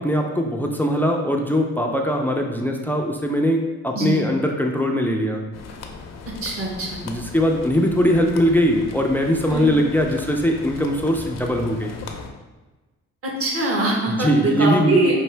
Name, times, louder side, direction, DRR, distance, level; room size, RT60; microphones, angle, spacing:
voice 1, 0.0-5.4 7.0-12.0 14.1-15.0, equal, 5° left, 2 dB, 0.4 m, -21 dB
sound 1, 5.5-12.3, left 4 dB, 60° left, 0.6 m, -37 dB
voice 2, 6.4-7.0 9.5-9.7 13.2-15.2, right 2 dB, 50° right, -2 dB, 1.3 m, -22 dB
5.5 x 2.6 x 3.3 m, 1.2 s
cardioid pair, 90°, 30 cm